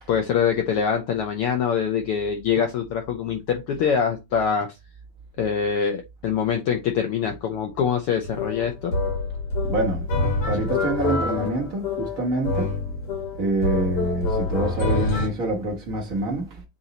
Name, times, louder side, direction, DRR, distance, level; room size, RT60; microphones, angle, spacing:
voice 1, 0.1-4.7 5.4-8.9, left 7 dB, 80° left, 1.3 m, -24 dB
sound 1, 8.2-15.3, left 3 dB, 55° left, 2.4 m, -26 dB
voice 2, 9.6-10.1 10.4-12.8 13.4-16.6, right 2 dB, 90° right, 0.7 m, -26 dB
8.0 x 3.0 x 3.9 m
omnidirectional pair, 3.4 m